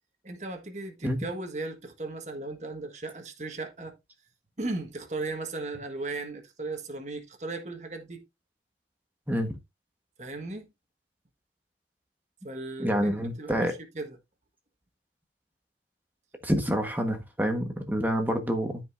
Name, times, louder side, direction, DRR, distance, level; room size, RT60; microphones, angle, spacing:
voice 1, 0.2-4.0 4.6-8.2 10.2-10.7 12.4-14.2, right 2 dB, 40° right, 1.6 m, -36 dB
voice 2, 9.3-9.6 12.8-13.7 16.4-18.8, equal, 10° right, 1.3 m, -27 dB
13.5 x 5.3 x 2.6 m
head